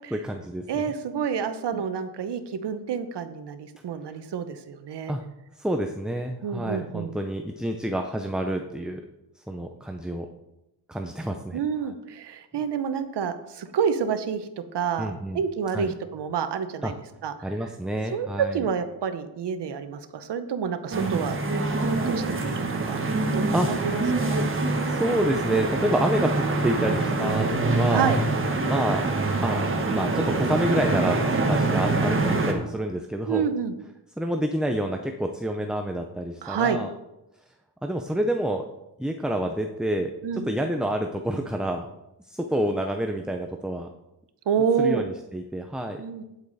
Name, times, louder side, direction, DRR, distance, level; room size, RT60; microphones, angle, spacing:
voice 1, 0.1-0.6 1.7-1.8 5.1-5.2 5.6-9.0 9.5-10.3 10.9-11.6 15.0-15.4 15.7-15.9 16.8-16.9 17.4-18.6 23.5-23.7 24.9-28.1 28.6-29.0 29.4-29.6 29.9-33.4 34.2-36.9 37.8-38.6 39.0-40.1 40.5-41.9 42.3-43.9 44.8-46.0, right 1 dB, ahead, 4 dB, 0.5 m, -28 dB
voice 2, 0.7-5.1 6.4-7.2 11.5-17.0 17.2-17.5 18.1-21.4 22.1-23.0 23.3-24.5 27.9-28.2 33.3-33.7 36.4-36.8 40.2-40.5 44.5-45.0 46.0-46.2, right 7 dB, 85° right, 9 dB, 1.0 m, -28 dB
sound 1, 20.9-32.5, right 3 dB, 30° right, 1.3 m, -25 dB
9.2 x 8.1 x 4.1 m, 0.90 s
wide cardioid pair, 160°, 40 cm